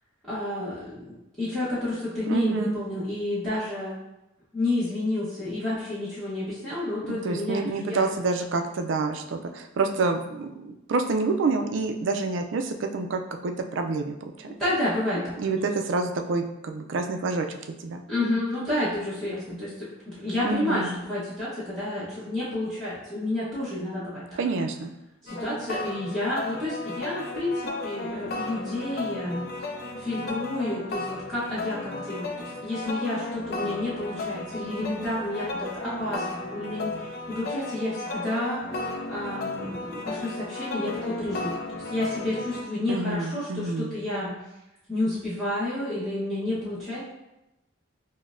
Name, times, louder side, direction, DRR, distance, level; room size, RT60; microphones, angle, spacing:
voice 1, 0.3-3.9 4.5-8.0 14.6-15.5 18.1-24.4 25.2-29.4 30.0-38.7 39.1-44.3 44.9-47.0, left 1 dB, ahead, -13 dB, 0.9 m, -30 dB
voice 2, 2.3-2.8 7.1-14.6 15.4-18.0 20.4-21.0 24.4-24.9 42.9-44.0, right 3 dB, 65° right, 5 dB, 0.4 m, -28 dB
sound 1, 25.3-42.6, left 2 dB, 50° left, 0.4 m, -34 dB
5.8 x 2.1 x 2.5 m, 0.93 s
head